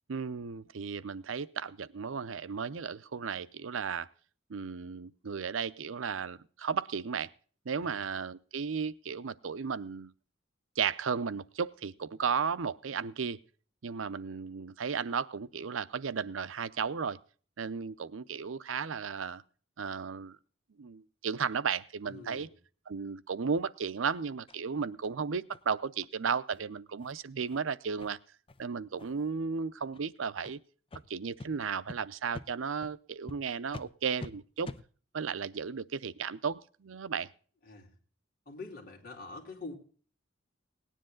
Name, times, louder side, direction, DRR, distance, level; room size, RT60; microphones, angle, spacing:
voice 1, 0.1-4.1 4.5-7.3 7.6-10.1 10.8-13.4 13.8-17.2 17.6-19.4 19.8-20.4 20.8-22.5 22.9-28.2 28.6-30.6 31.1-34.7 35.1-37.3, right 6 dB, 90° right, 17 dB, 0.6 m, -34 dB
voice 2, 22.1-22.5 37.6-38.0 38.5-39.7, left 3 dB, 50° left, 0 dB, 3.7 m, -45 dB
sound 1, 24.5-24.6 25.0-25.1 25.5-25.6 26.0-26.1 26.5-26.6 27.0-27.1 27.5-27.6 28.0-28.1 28.5-28.6 29.0-29.3 29.9-30.0 30.4-30.5 30.9-31.0 31.4-31.5 31.9-32.0 32.3-32.5 32.8-32.9 33.3-33.4 33.7-33.9 34.2-34.3 34.6-34.8, left 2 dB, 30° left, 0.7 m, -45 dB
18.5 x 10.0 x 3.8 m, 0.42 s
head